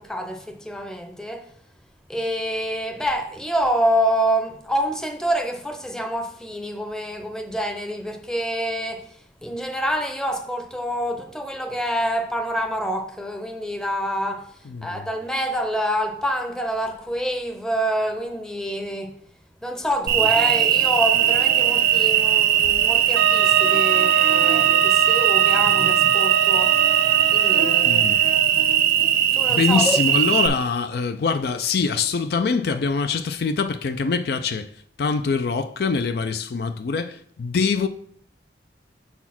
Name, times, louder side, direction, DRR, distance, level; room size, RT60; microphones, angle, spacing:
voice 1, 0.0-1.5 2.1-19.2 19.6-26.8 27.3-28.0 29.3-30.0, equal, 5° left, 0.7 m, -27 dB
voice 2, 14.7-15.0 27.8-28.2 29.5-34.7 35.0-37.9, left 5 dB, 60° left, 0.4 m, -24 dB
Cricket, 20.1-30.5, right 10 dB, 55° right, 0.7 m, -19 dB
Wind instrument woodwind instrument, 23.2-27.8, right 8 dB, 80° right, 0.3 m, -24 dB
6.8 x 4.2 x 5.8 m
head